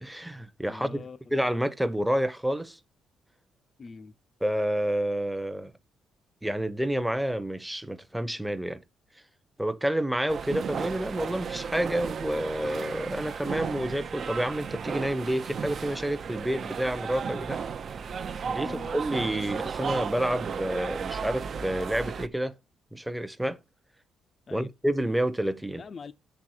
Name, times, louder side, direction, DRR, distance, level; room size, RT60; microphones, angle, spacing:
voice 1, 0.0-2.8 4.4-5.7 6.4-8.8 9.6-17.6 18.4-22.5 22.9-23.6 24.5-25.8, right 1 dB, 5° right, 0.8 m, -29 dB
voice 2, 0.7-1.5 3.8-4.1 18.6-18.9 24.5-24.7 25.8-26.1, left 4 dB, 40° left, 0.5 m, -43 dB
sound 1, 10.3-22.3, right 6 dB, 50° right, 0.7 m, -34 dB
7.5 x 3.4 x 6.4 m
cardioid pair, 90°, 0 cm